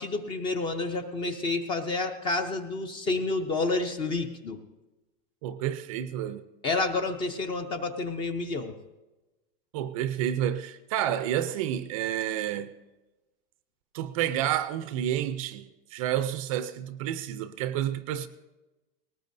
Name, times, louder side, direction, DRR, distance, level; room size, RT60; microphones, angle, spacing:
voice 1, 0.0-4.6 6.6-8.7, left 3 dB, 15° left, 0.5 m, -29 dB
voice 2, 5.4-6.4 9.7-12.7 13.9-18.3, right 11 dB, 35° right, 0.5 m, -30 dB
19.5 x 18.5 x 2.6 m
supercardioid pair, 165°, 30 cm